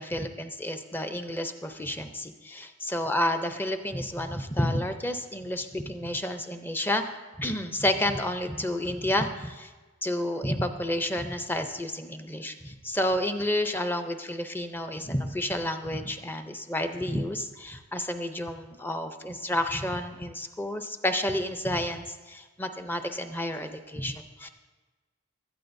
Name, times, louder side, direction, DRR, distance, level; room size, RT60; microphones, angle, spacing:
voice 1, 0.0-7.0 7.4-9.7 10.0-24.5, left 1 dB, 10° left, 7 dB, 0.5 m, -30 dB
17.0 x 13.0 x 2.6 m, 1.3 s
head